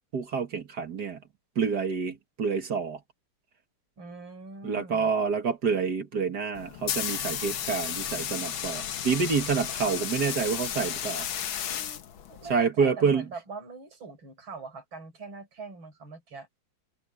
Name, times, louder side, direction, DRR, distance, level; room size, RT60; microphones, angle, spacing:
voice 1, 0.1-1.2 1.6-3.0 4.6-11.3 12.5-13.3, right 5 dB, 55° right, 2.2 m, -28 dB
voice 2, 4.0-5.1 11.7-16.5, right 3 dB, 75° right, 5.4 m, -43 dB
sound 1, 6.5-12.5, left 9 dB, 80° left, 2.0 m, -33 dB
omnidirectional pair, 2.2 m